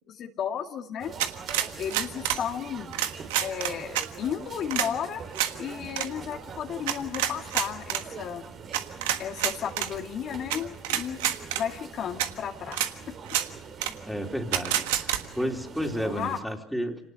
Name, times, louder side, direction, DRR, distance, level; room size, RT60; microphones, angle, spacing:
voice 1, 0.1-1.1 1.8-2.9 3.4-5.2 5.6-8.4 9.2-11.2 11.5-12.8 13.3-13.4 16.0-16.4, left 8 dB, 55° left, 2 dB, 2.2 m, -33 dB
sound 1, 1.0-16.4, right 6 dB, 45° right, 3.2 m, -43 dB
sound 2, 1.2-2.4 2.9-4.1 4.7-4.9 5.3-5.5 5.9-6.1 6.9-8.0 8.7-9.9 10.5-10.6 10.8-11.6 12.2-12.3 12.7-12.9 13.3-13.5 13.8-13.9 14.5-15.2, right 12 dB, 85° right, 1.5 m, -27 dB
voice 2, 14.1-15.1 15.3-17.0, equal, ahead, 2 dB, 3.7 m, -31 dB
26.5 x 19.0 x 7.0 m, 0.72 s
supercardioid pair, 85°, 0 cm